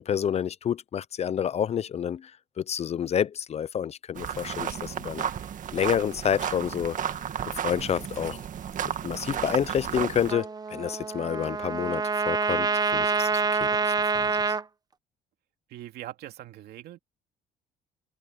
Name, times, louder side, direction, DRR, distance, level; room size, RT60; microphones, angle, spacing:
voice 1, 0.0-2.3 2.6-5.2 5.7-7.2 7.6-8.4 8.8-14.6, left 9 dB, 40° left, 0.5 m, -29 dB
sound 1, 4.1-10.3, right 9 dB, 50° right, 1.8 m, -33 dB
sound 2, 8.4-12.2, left 14 dB, 75° left, 5.4 m, -54 dB
Trumpet, 10.3-14.6, right 4 dB, 25° right, 0.9 m, -27 dB
voice 2, 15.7-17.0, right 13 dB, 70° right, 2.5 m, -41 dB
cardioid pair, 110°, 17 cm